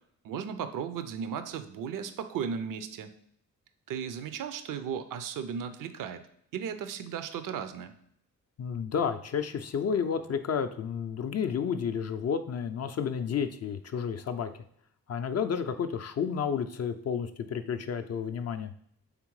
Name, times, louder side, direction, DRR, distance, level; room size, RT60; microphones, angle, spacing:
voice 1, 0.2-3.1 3.9-6.2 6.5-7.9, right 7 dB, 55° right, 10 dB, 0.6 m, -35 dB
voice 2, 8.6-14.6 15.1-18.7, left 7 dB, 40° left, 8 dB, 0.4 m, -31 dB
3.6 x 3.4 x 3.1 m, 0.69 s
hypercardioid pair, 40°, 39 cm